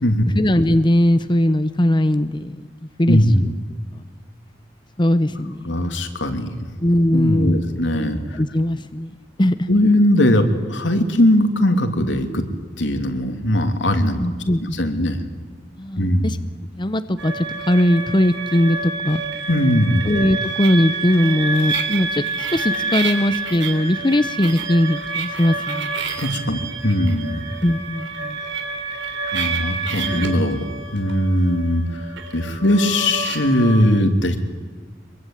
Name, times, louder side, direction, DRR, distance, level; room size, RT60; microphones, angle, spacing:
voice 1, 0.3-2.6 3.0-3.5 3.9-4.0 5.0-5.9 6.8-7.8 8.4-9.1 9.4-9.7 14.2-15.1 15.8-16.4 16.8-19.2 20.0-25.9 27.6-28.4 30.1-30.3, left 1 dB, 25° left, 11 dB, 0.8 m, -20 dB
voice 2, 3.1-3.5 5.6-6.7 7.1-8.4 9.7-12.4 12.8-14.2 14.6-15.2 16.0-16.3 19.5-20.1 26.2-27.4 29.3-30.7 30.9-32.0 32.3-34.4, left 1 dB, 80° left, 6 dB, 3.1 m, -19 dB
sound 1, 17.2-33.8, right 4 dB, 80° right, 3.6 m, -28 dB
25.0 x 22.5 x 9.3 m, 1.4 s
head